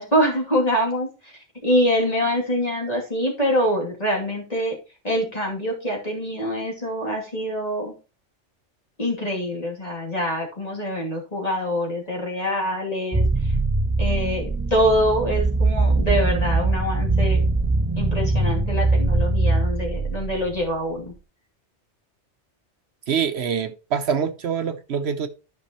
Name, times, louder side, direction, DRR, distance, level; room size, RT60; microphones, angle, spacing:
voice 1, 0.0-4.8 5.0-7.9 9.0-13.5 14.0-17.4 18.0-21.1, equal, 35° left, 2.7 m, -25 dB
sound 1, 13.1-20.6, right 3 dB, 15° right, 0.5 m, -22 dB
voice 2, 23.1-25.3, right 7 dB, 70° right, 1.0 m, -25 dB
13.0 x 5.4 x 3.0 m
omnidirectional pair, 1.2 m